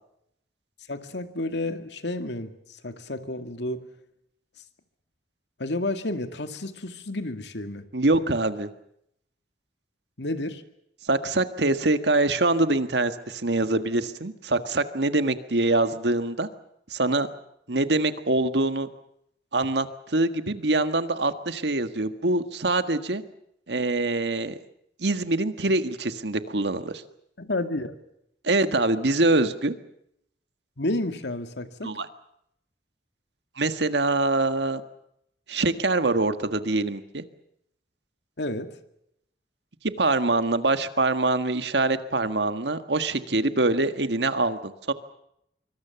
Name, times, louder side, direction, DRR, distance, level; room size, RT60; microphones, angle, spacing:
voice 1, 0.9-3.9 5.6-7.9 10.2-10.6 27.4-28.0 30.8-31.9 38.4-38.8, left 2 dB, 80° left, 8 dB, 2.1 m, -31 dB
voice 2, 7.9-8.7 11.1-16.5 16.9-17.3 17.7-18.9 19.5-23.2 23.7-24.6 25.0-27.0 28.4-29.7 31.8-32.1 33.6-34.8 35.5-37.2 40.0-44.9, right 2 dB, 75° right, 10 dB, 1.6 m, -24 dB
25.5 x 24.5 x 7.0 m, 0.76 s
head